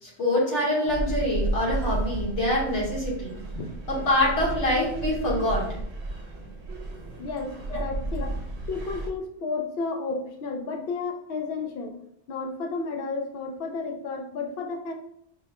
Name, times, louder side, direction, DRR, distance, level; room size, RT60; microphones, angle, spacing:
voice 1, 0.0-3.4 3.9-5.6 7.7-7.8, left 1 dB, 85° left, -5 dB, 1.8 m, -25 dB
sound 1, 0.9-9.1, right 1 dB, 70° right, 0.9 m, -32 dB
voice 2, 7.2-8.3 8.7-12.0 12.3-14.9, left 4 dB, 60° left, 4 dB, 0.7 m, -32 dB
5.4 x 2.1 x 2.9 m, 0.73 s
omnidirectional pair, 1.2 m